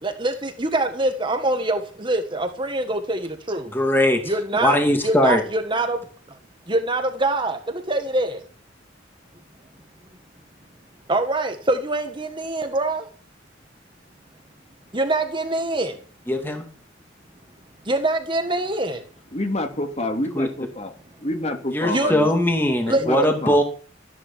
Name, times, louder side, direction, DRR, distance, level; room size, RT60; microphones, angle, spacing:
voice 1, 0.0-3.7 4.2-4.8 5.0-6.0 6.7-8.4 11.1-13.1 14.9-16.0 17.8-19.0 21.9-22.1 22.9-23.3, right 2 dB, 25° right, 1.7 m, -24 dB
voice 2, 3.7-4.2 4.6-5.4 16.3-16.6 20.3-20.5 21.7-23.6, left 1 dB, 10° left, 2.3 m, -20 dB
voice 3, 19.3-20.9 21.2-22.3 22.9-23.6, left 1 dB, 35° left, 2.9 m, -28 dB
14.0 x 11.0 x 7.4 m
head